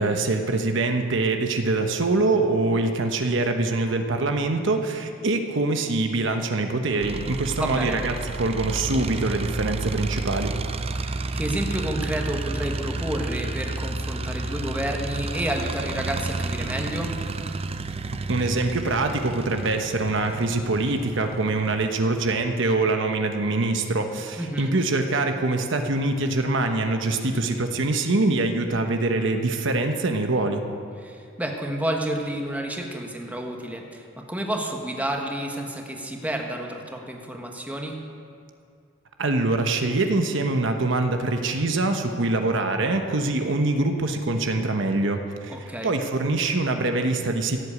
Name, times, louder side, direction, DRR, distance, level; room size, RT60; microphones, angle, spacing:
voice 1, 0.0-10.5 18.3-30.6 39.2-47.6, right 2 dB, 65° right, 5 dB, 1.0 m, -24 dB
sound 1, 7.0-22.6, right 3 dB, 30° right, 0.5 m, -31 dB
voice 2, 7.6-8.0 11.0-17.1 24.4-24.7 31.0-38.0 45.5-45.9, right 1 dB, 10° right, 1 dB, 1.4 m, -30 dB
16.0 x 8.2 x 8.5 m, 2.4 s
head